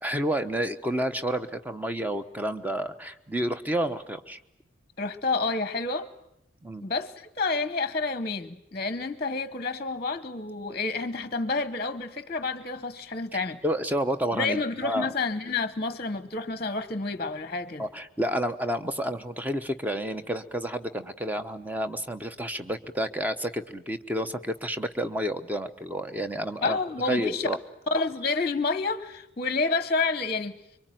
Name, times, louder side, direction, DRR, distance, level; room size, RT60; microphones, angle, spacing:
voice 1, 0.0-4.4 6.6-6.8 13.6-15.1 17.8-26.8 27.0-27.6, equal, 10° right, 1.1 m, -30 dB
voice 2, 5.0-6.1 6.8-13.6 14.3-17.9 26.6-27.5 27.9-30.5, left 3 dB, 30° left, 1.0 m, -29 dB
25.5 x 24.5 x 9.3 m
head